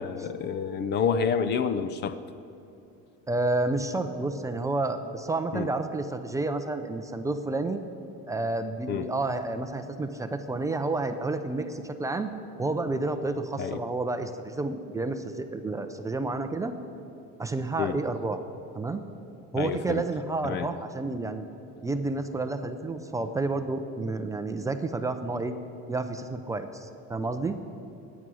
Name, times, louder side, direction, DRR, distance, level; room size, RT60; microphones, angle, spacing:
voice 1, 0.0-2.2 5.5-5.7 8.9-9.1 13.6-13.8 17.8-18.0 19.5-20.0 20.4-20.7, left 6 dB, 35° left, 13 dB, 0.6 m, -28 dB
voice 2, 3.3-7.8 8.3-12.3 12.6-16.7 17.4-18.4 18.7-19.0 19.5-21.5 21.8-25.6 25.9-27.6, right 2 dB, 10° right, 7 dB, 0.5 m, -30 dB
23.0 x 10.0 x 6.2 m, 2.8 s
cardioid pair, 165°, 30 cm